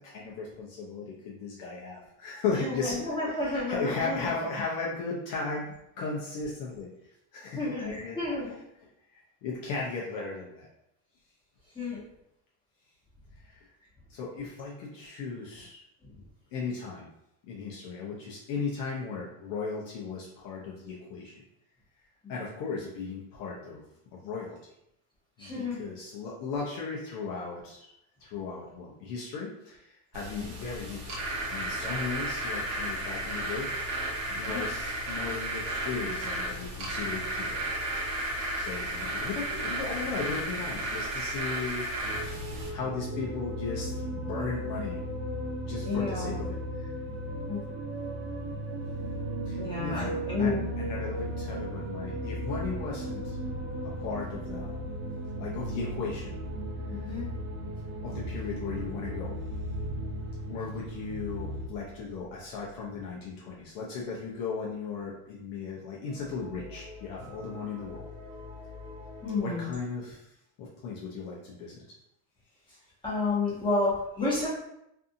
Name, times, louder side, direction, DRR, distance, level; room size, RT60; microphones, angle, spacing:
voice 1, 0.0-6.9 7.3-8.2 9.1-10.7 13.4-13.7 14.1-15.8 16.5-17.1 17.5-21.3 22.3-23.8 24.1-24.6 25.4-27.9 28.2-31.2 31.5-33.7 34.3-37.7 38.3-41.9 42.7-45.0 45.6-46.9 49.5-53.4 53.8-55.1 55.4-56.4 56.9-57.1 58.0-59.3 60.5-68.1 69.4-70.2 70.6-71.8, left 4 dB, 55° left, -4 dB, 0.6 m, -36 dB
voice 2, 2.6-4.3 7.6-8.5 11.7-12.0 16.0-16.1 22.2-22.4 25.4-25.8 30.3-30.5 34.4-34.6 45.8-46.4 47.5-47.6 49.6-50.6 57.0-57.3 69.2-69.7 73.0-74.5, left 3 dB, 10° left, -8 dB, 1.0 m, -31 dB
sound 1, 30.1-42.7, right 1 dB, 50° right, 0.9 m, -33 dB
sound 2, 42.0-61.7, right 1 dB, 85° right, 0.7 m, -36 dB
sound 3, 52.5-63.8 64.1-64.3 64.6-64.8 66.1-69.4, equal, 20° right, 1.2 m, -46 dB
2.6 x 2.5 x 2.6 m, 0.80 s
cardioid pair, 150°, 42 cm